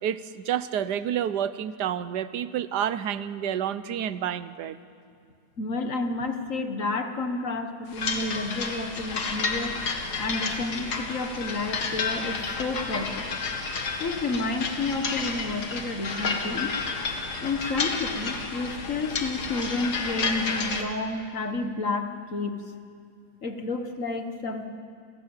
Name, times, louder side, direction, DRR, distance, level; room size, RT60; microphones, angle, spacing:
voice 1, 0.0-4.8, right 9 dB, 90° right, 14 dB, 1.4 m, -29 dB
voice 2, 5.6-9.7 10.2-13.3 14.0-16.7 17.4-22.6 23.4-24.6, left 3 dB, 50° left, 6 dB, 1.9 m, -30 dB
sound 1, 7.9-20.8, left 4 dB, 70° left, 2.2 m, -31 dB
29.5 x 17.0 x 7.4 m, 2.2 s
omnidirectional pair, 1.7 m